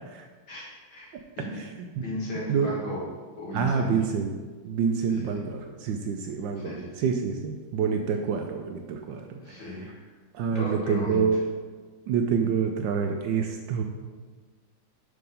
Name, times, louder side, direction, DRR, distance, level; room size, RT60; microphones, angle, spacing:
voice 1, 0.5-1.7 2.0-3.0 3.4-3.9 5.1-5.4 6.6-6.9 9.4-10.1 10.4-11.2, left 1 dB, 70° left, -5 dB, 2.6 m, -36 dB
voice 2, 3.5-4.4 4.6-9.8 10.3-11.4 12.1-13.8, right 6 dB, 75° right, 4 dB, 1.1 m, -27 dB
5.8 x 4.8 x 5.3 m, 1.4 s
omnidirectional pair, 2.3 m